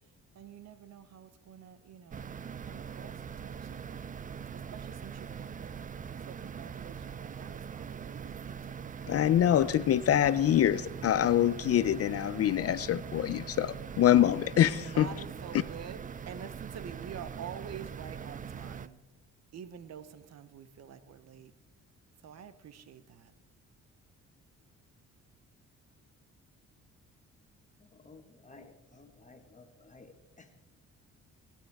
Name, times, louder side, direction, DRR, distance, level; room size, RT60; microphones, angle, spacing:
voice 1, 0.3-2.2 2.7-4.1 4.5-5.7 6.3-9.3 14.9-19.0 19.5-21.5 22.2-23.3, right 8 dB, 60° right, 0.8 m, -48 dB
computer close, 2.1-18.9, right 7 dB, 25° right, 0.5 m, -42 dB
voice 2, 9.1-15.1 15.5-15.6, left 11 dB, 50° left, 0.5 m, -25 dB
voice 3, 28.0-30.6, left 3 dB, 25° left, 1.4 m, -55 dB
25.0 x 9.2 x 3.5 m
cardioid pair, 90°, 30 cm